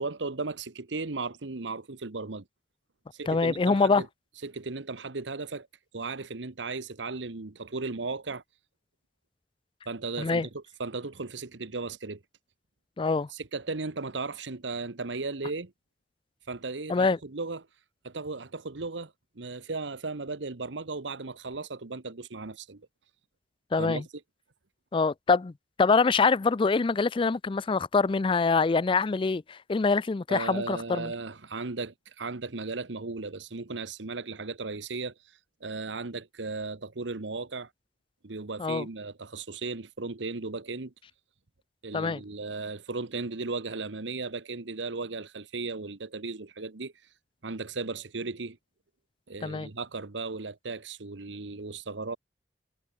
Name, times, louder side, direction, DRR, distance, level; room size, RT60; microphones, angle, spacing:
voice 1, 0.0-2.4 3.1-4.1 4.4-5.7 5.9-8.4 9.9-12.2 13.3-15.7 16.5-17.7 18.0-22.9 23.8-24.0 30.3-35.1 35.6-37.7 38.2-40.9 41.8-46.9 47.4-48.6 49.3-52.2, right 3 dB, 85° right, 1.2 m, -36 dB
voice 2, 3.3-4.0 10.2-10.5 13.0-13.3 16.9-17.2 23.7-24.0 24.9-25.5 25.8-31.1 38.6-38.9 41.9-42.2 49.4-49.7, left 4 dB, 30° left, 0.4 m, -25 dB
head